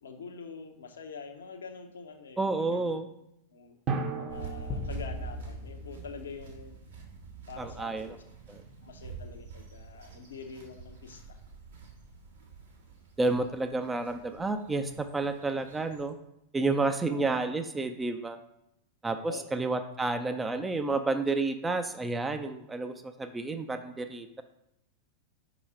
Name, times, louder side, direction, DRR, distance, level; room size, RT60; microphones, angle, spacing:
voice 1, 0.0-3.0 3.5-3.8 4.1-6.8 7.5-8.2 8.8-11.4 17.1-17.2 19.2-19.6, left 5 dB, 65° left, 4 dB, 0.7 m, -45 dB
voice 2, 2.4-3.0 7.6-8.1 8.5-8.6 13.2-16.2 16.5-18.4 19.0-24.4, right 3 dB, 10° right, 8 dB, 0.4 m, -30 dB
Drum, 3.9-6.2, right 4 dB, 35° right, 0.9 m, -36 dB
sound 1, 4.3-16.1, right 5 dB, 70° right, 1.6 m, -47 dB
sound 2, 4.7-7.3, left 2 dB, 25° left, 0.7 m, -40 dB
5.4 x 4.9 x 4.6 m, 0.81 s
figure-of-eight pair, 90°, 0 cm